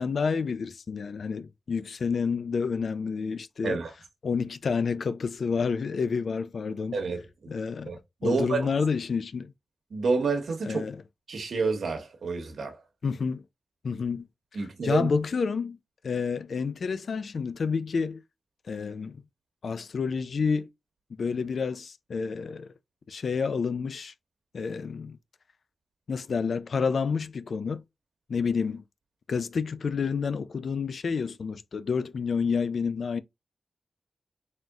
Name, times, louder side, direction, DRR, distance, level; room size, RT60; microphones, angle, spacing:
voice 1, 0.0-7.1 7.5-7.9 8.2-9.5 10.6-11.0 13.0-13.4 13.8-14.3 14.6-15.8 16.0-18.2 18.7-19.2 19.6-20.7 21.2-22.7 23.1-24.1 24.5-25.2 26.1-27.8 28.3-28.8 29.3-33.2, left 5 dB, 70° left, 0.4 m, -29 dB
voice 2, 6.9-7.5 7.8-8.7 9.9-10.8 11.3-12.8 14.5-15.1, right 4 dB, 85° right, 1.2 m, -29 dB
4.2 x 3.5 x 2.4 m
wide cardioid pair, 100°, 0 cm